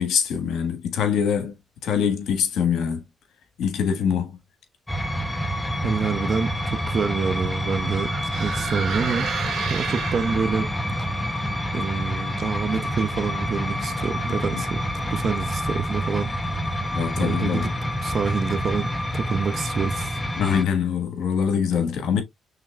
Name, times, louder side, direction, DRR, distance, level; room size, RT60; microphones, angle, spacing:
voice 1, 0.0-1.5 1.8-3.0 3.6-4.3 16.9-17.7 20.4-22.2, left 7 dB, 75° left, 1.6 m, -23 dB
sound 1, 4.9-20.6, equal, 10° left, 0.9 m, -28 dB
voice 2, 5.8-8.1 8.4-9.3 9.7-10.7 11.7-14.8 15.1-16.3 17.2-17.7 18.0-20.3, right 5 dB, 50° right, 0.7 m, -27 dB
sound 2, 6.4-10.8, right 7 dB, 70° right, 1.1 m, -33 dB
5.8 x 3.3 x 2.4 m
cardioid pair, 85°, 0 cm